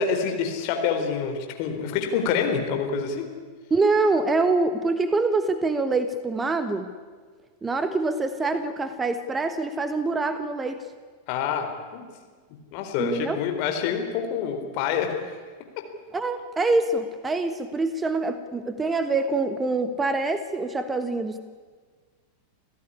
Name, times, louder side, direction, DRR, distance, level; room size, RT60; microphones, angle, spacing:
voice 1, 0.0-3.3 11.3-12.0 12.7-15.4 15.8-15.9, left 6 dB, 45° left, 5 dB, 4.1 m, -27 dB
voice 2, 3.7-6.9 7.6-10.9 13.0-13.4 16.1-21.4, right 3 dB, 15° right, 11 dB, 1.4 m, -25 dB
28.5 x 15.5 x 9.8 m, 1.5 s
figure-of-eight pair, 90°, 0 cm